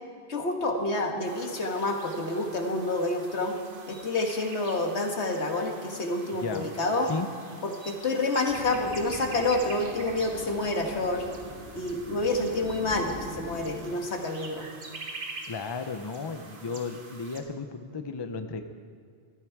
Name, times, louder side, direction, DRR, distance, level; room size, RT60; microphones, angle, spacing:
voice 1, 0.3-3.6 3.9-7.1 7.6-11.3 11.7-14.7, left 2 dB, 85° left, 3 dB, 1.7 m, -28 dB
sound 1, 1.2-17.4, right 3 dB, 55° right, 1.5 m, -46 dB
sound 2, 8.5-13.8, equal, 20° right, 2.6 m, -43 dB
voice 2, 15.5-18.6, left 4 dB, 30° left, 8 dB, 0.6 m, -34 dB
14.5 x 13.5 x 4.7 m, 2.2 s
omnidirectional pair, 1.1 m